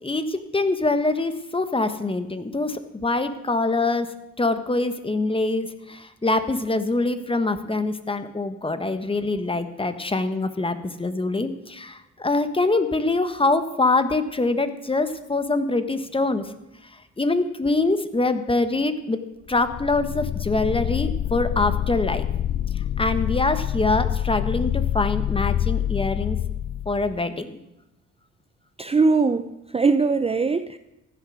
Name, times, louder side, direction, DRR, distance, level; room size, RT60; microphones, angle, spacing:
voice 1, 0.0-4.1 4.4-16.4 17.2-19.2 19.5-22.2 23.0-26.4 26.8-27.5, left 2 dB, 20° left, 10 dB, 1.4 m, -24 dB
sound 1, 19.5-27.2, left 11 dB, 35° left, 0.5 m, -26 dB
voice 2, 28.8-30.8, right 4 dB, 20° right, 11 dB, 0.6 m, -21 dB
15.5 x 11.0 x 6.3 m, 0.91 s
cardioid pair, 90°, 30 cm